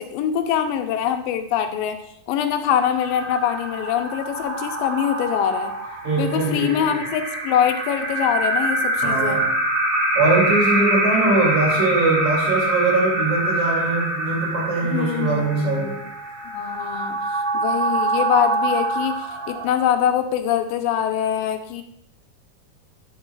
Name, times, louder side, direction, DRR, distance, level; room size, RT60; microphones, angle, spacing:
voice 1, 0.0-2.0 2.3-5.7 6.2-9.4 14.9-16.0 16.5-17.2 17.5-21.8, left 9 dB, 90° left, 6 dB, 2.4 m, -23 dB
sound 1, 2.7-20.1, right 1 dB, 40° right, 2.3 m, -25 dB
voice 2, 6.0-6.9 9.0-9.5 10.2-16.0, right 3 dB, 60° right, -3 dB, 3.8 m, -22 dB
9.7 x 8.0 x 2.4 m, 0.71 s
omnidirectional pair, 4.0 m